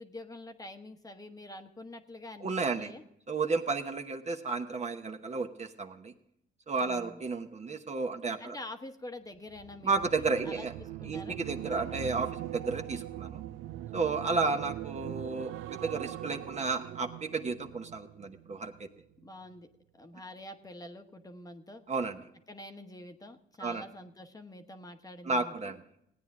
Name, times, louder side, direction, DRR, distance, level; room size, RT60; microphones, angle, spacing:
voice 1, 0.0-3.0 6.8-7.2 8.4-11.4 14.2-14.6 19.2-19.7 19.9-21.8 22.5-25.7, left 1 dB, 20° left, 6 dB, 1.0 m, -46 dB
voice 2, 2.4-2.9 3.3-6.1 6.7-8.6 9.8-10.7 11.1-13.4 13.9-18.9 21.9-22.2 23.6-23.8 25.2-25.8, right 4 dB, 35° right, 5 dB, 1.0 m, -32 dB
sound 1, 9.5-18.9 19.2-19.5, right 14 dB, 85° right, 0.5 m, -42 dB
16.5 x 9.4 x 3.7 m, 0.75 s
cardioid pair, 90°, 20 cm